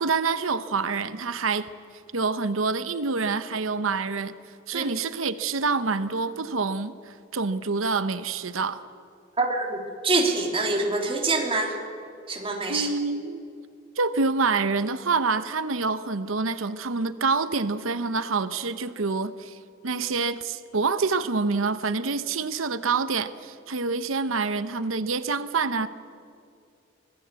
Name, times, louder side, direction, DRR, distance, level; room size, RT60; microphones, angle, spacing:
voice 1, 0.0-1.7 2.1-4.3 4.7-8.8 12.7-13.4 14.0-19.6 19.8-25.9, right 4 dB, 85° right, 12 dB, 0.9 m, -27 dB
voice 2, 9.4-11.8 12.3-12.9, right 3 dB, 30° right, 2 dB, 3.3 m, -25 dB
25.5 x 19.0 x 8.3 m, 2.4 s
head